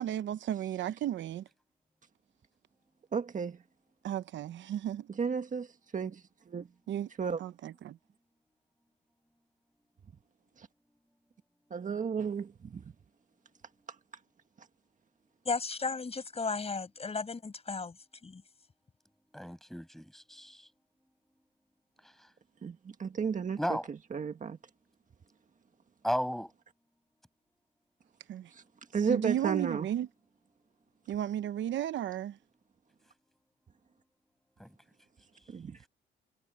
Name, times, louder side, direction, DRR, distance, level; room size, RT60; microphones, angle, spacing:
voice 1, 0.0-1.4 4.0-5.1 6.9-7.1 7.4-8.0 28.3-28.5 29.1-30.1 31.1-32.4, right 11 dB, 70° right, 0.8 m, -34 dB
voice 2, 3.1-3.6 5.1-6.7 7.2-7.4 10.6-10.7 11.7-12.9 14.6-14.7 22.6-23.8 24.1-24.6 28.5-28.6 28.9-29.9 35.5-35.9, right 6 dB, 40° right, 1.6 m, -33 dB
voice 3, 15.4-18.4, left 4 dB, 30° left, 7.6 m, -35 dB
voice 4, 19.3-20.7 22.0-22.3 23.6-23.9 26.0-26.5 34.6-34.8, equal, ahead, 7.3 m, -35 dB
cardioid pair, 90°, 20 cm